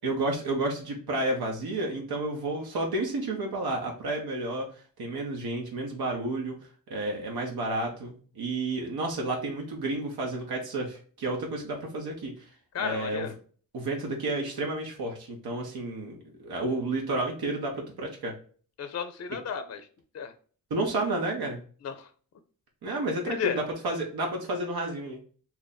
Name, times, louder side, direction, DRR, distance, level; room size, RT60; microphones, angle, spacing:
voice 1, 0.0-4.7 5.0-6.5 6.9-12.3 12.8-13.3 13.7-18.3 20.7-21.6 22.8-25.2, right 2 dB, 90° right, 0 dB, 0.8 m, -31 dB
voice 2, 12.7-13.4 18.8-19.9 20.1-20.3 21.8-22.1 23.3-23.6, left 7 dB, 45° left, 8 dB, 0.4 m, -33 dB
2.8 x 2.5 x 4.0 m, 0.43 s
wide cardioid pair, 125°, 36 cm